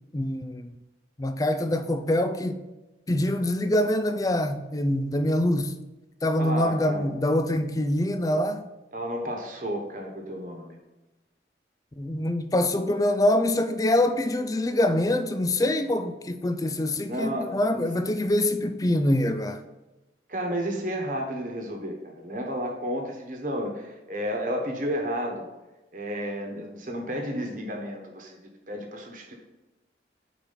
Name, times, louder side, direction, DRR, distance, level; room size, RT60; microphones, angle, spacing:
voice 1, 0.1-0.7 1.2-2.6 3.1-5.8 6.2-8.6 12.0-19.6, left 1 dB, 20° left, 0.4 m, -25 dB
voice 2, 6.4-7.1 8.9-10.8 17.1-17.9 20.3-25.5 25.9-29.3, equal, 50° right, 1.3 m, -32 dB
5.2 x 4.6 x 5.8 m
head